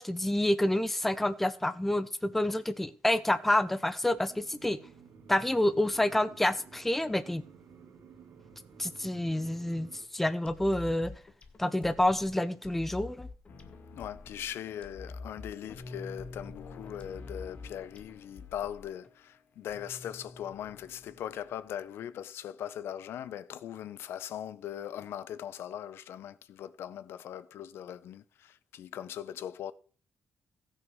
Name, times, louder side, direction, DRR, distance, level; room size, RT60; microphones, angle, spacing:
voice 1, 0.0-4.8 5.3-7.4 8.8-11.1 11.6-13.3, left 1 dB, 5° left, 0.6 m, -28 dB
sound 1, 4.1-10.1, right 6 dB, 55° right, 2.4 m, -54 dB
sound 2, 10.5-19.1, left 3 dB, 25° left, 1.5 m, -47 dB
sound 3, 13.5-21.7, left 3 dB, 50° left, 1.8 m, -50 dB
voice 2, 13.9-29.7, left 10 dB, 65° left, 0.7 m, -40 dB
16.0 x 6.5 x 6.2 m
cardioid pair, 165°, 4 cm